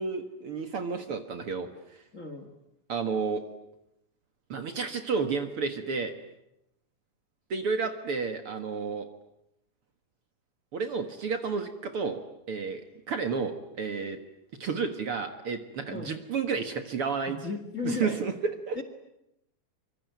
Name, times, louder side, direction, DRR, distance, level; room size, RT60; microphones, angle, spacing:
voice 1, 0.0-2.0 2.9-3.4 4.5-6.1 7.5-9.1 10.7-12.2 12.5-12.8 13.1-14.2 14.6-17.4 17.8-18.8, right 5 dB, 50° right, 7 dB, 2.2 m, -31 dB
voice 2, 2.1-2.5 15.9-16.2 17.3-18.2 18.8-18.9, left 4 dB, 30° left, 9 dB, 2.1 m, -35 dB
25.0 x 24.5 x 9.4 m, 0.84 s
omnidirectional pair, 3.5 m